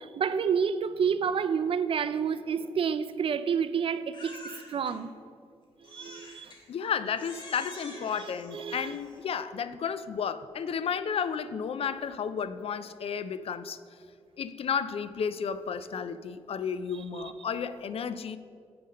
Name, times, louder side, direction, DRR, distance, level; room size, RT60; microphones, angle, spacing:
voice 1, 0.0-4.4 4.7-5.1 5.9-6.5 8.1-8.9, right 6 dB, 55° right, 11 dB, 0.4 m, -29 dB
Crying sobbing, 4.1-4.9 5.8-6.6 7.2-9.3, left 1 dB, 45° left, 1.7 m, -47 dB
voice 2, 6.7-13.8 14.4-18.4, left 7 dB, 60° left, 13 dB, 0.4 m, -32 dB
7.8 x 5.6 x 6.3 m, 2.3 s
wide cardioid pair, 145°, 11 cm